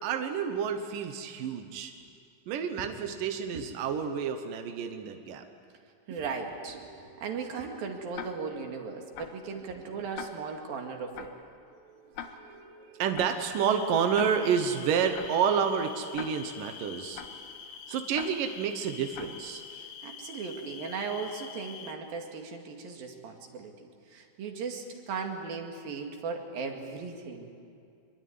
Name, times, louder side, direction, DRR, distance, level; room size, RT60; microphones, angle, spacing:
voice 1, 0.0-1.9 2.5-5.5 12.0-17.2 17.9-19.6, right 7 dB, 70° right, 6 dB, 2.1 m, -29 dB
voice 2, 6.1-11.3 19.7-27.5, right 5 dB, 55° right, 3 dB, 3.6 m, -37 dB
Tick-tock, 8.1-8.6 9.2-9.5 10.2-10.6 11.2-11.5 12.2-12.6 13.2-13.5 14.2-14.6 15.2-15.5 16.2-16.6 17.2-17.5 18.1-18.6 19.1-19.5, left 8 dB, 90° left, 4.0 m, -43 dB
sound 1, 13.5-21.9, left 7 dB, 65° left, 3.4 m, -46 dB
25.0 x 23.0 x 9.5 m, 2.4 s
omnidirectional pair, 5.5 m